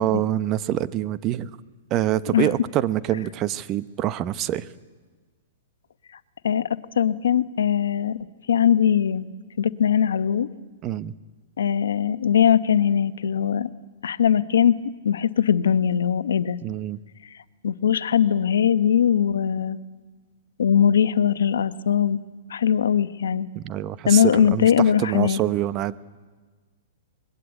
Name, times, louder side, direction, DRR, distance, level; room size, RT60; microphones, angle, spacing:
voice 1, 0.0-1.6 1.9-4.7 10.8-11.1 16.6-17.0 23.5-24.7 25.0-26.0, right 13 dB, 30° right, 13 dB, 1.0 m, -25 dB
voice 2, 7.0-8.2 8.5-9.3 9.6-10.5 11.6-13.7 14.0-14.8 15.0-16.6 17.6-19.8 20.6-22.2 22.5-23.5 24.1-25.4, left 8 dB, 80° left, 13 dB, 1.0 m, -20 dB
24.5 x 21.5 x 9.0 m, 1.4 s
hypercardioid pair, 130°, 0 cm